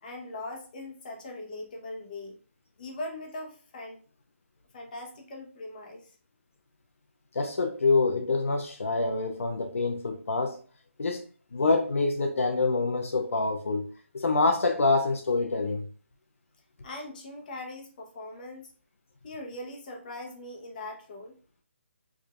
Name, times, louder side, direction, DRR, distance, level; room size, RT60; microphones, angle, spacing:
voice 1, 0.0-2.4 2.8-4.0 4.7-6.1 16.8-18.7 19.2-21.3, left 2 dB, 40° left, 1.0 m, -40 dB
voice 2, 7.3-10.6 11.0-11.2 11.5-13.9 14.1-15.8, left 3 dB, 80° left, 0.6 m, -26 dB
4.8 x 2.7 x 2.4 m
hypercardioid pair, 160°, 7 cm